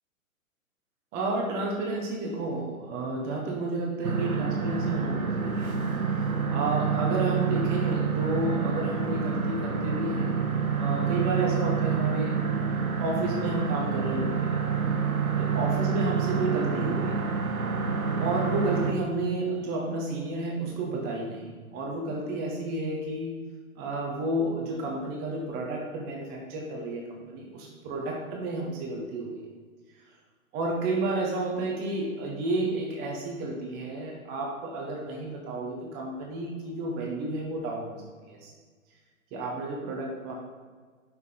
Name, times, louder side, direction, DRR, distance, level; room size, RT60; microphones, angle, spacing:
voice 1, 1.1-5.8 6.5-10.3 10.8-12.4 13.0-14.5 15.4-17.2 18.2-23.4 23.8-29.4 30.5-38.5 39.3-40.4, right 2 dB, 20° right, -1 dB, 1.2 m, -31 dB
sound 1, 4.0-18.9, right 6 dB, 75° right, 1.2 m, -28 dB
11.0 x 6.2 x 3.9 m, 1.5 s
figure-of-eight pair, 125°, 42 cm